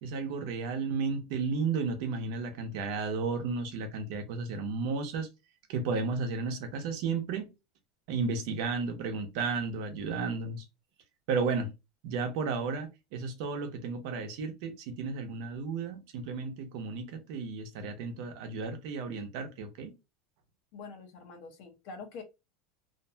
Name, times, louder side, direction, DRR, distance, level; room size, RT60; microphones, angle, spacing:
voice 1, 0.0-5.3 5.7-7.5 8.1-10.6 11.3-11.7 12.0-19.9, right 4 dB, 65° right, 0.8 m, -33 dB
voice 2, 20.7-22.2, left 4 dB, 55° left, 0.8 m, -45 dB
2.6 x 2.2 x 2.6 m
supercardioid pair, 145°, 3 cm